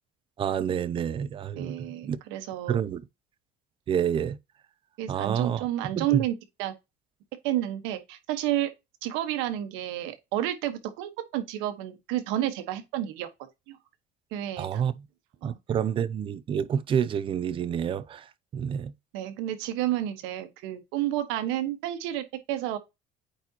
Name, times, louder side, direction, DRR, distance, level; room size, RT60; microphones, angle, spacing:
voice 1, 0.4-2.2 2.7-3.0 3.9-4.4 5.1-5.7 6.0-6.2 14.6-14.9 15.4-18.3 18.5-18.9, right 8 dB, 25° right, 0.5 m, -28 dB
voice 2, 1.6-2.8 5.0-6.7 7.4-8.7 9.0-13.3 13.7-13.8 14.3-14.8 15.4-15.6 19.1-22.8, right 13 dB, 85° right, 1.4 m, -30 dB
8.8 x 4.1 x 2.9 m
cardioid pair, 160°, 20 cm